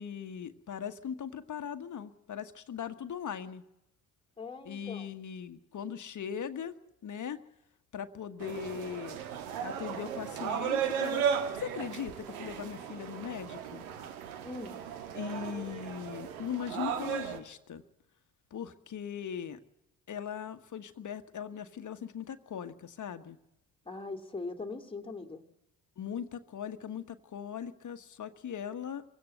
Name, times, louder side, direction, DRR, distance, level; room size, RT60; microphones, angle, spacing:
voice 1, 0.0-3.6 4.6-6.8 7.0-7.4 7.9-9.2 9.6-11.3 11.5-13.8 15.1-17.8 18.5-19.6 20.1-23.4 26.0-29.0, left 8 dB, 45° left, 10 dB, 1.5 m, -39 dB
voice 2, 4.4-5.1 14.4-14.8 23.9-25.4, left 3 dB, 10° left, 4 dB, 2.5 m, -41 dB
sound 1, 8.4-17.4, right 8 dB, 85° right, 1.5 m, -35 dB
23.5 x 17.0 x 8.0 m, 0.89 s
hypercardioid pair, 55°, 42 cm